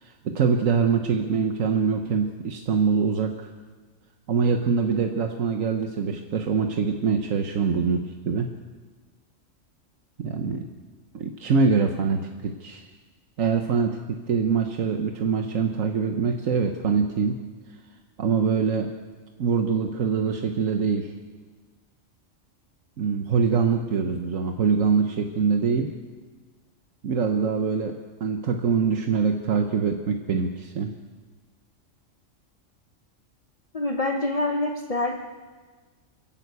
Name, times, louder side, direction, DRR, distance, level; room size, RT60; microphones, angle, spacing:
voice 1, 0.0-3.5 4.3-8.5 10.2-10.6 11.1-12.8 13.4-17.4 18.2-18.9 19.4-21.1 23.0-25.9 27.0-27.9 28.2-30.9, right 5 dB, 85° right, 4 dB, 1.5 m, -24 dB
voice 2, 33.7-35.3, left 2 dB, 30° left, 3 dB, 1.1 m, -26 dB
29.0 x 11.5 x 8.3 m, 1.4 s
omnidirectional pair, 1.3 m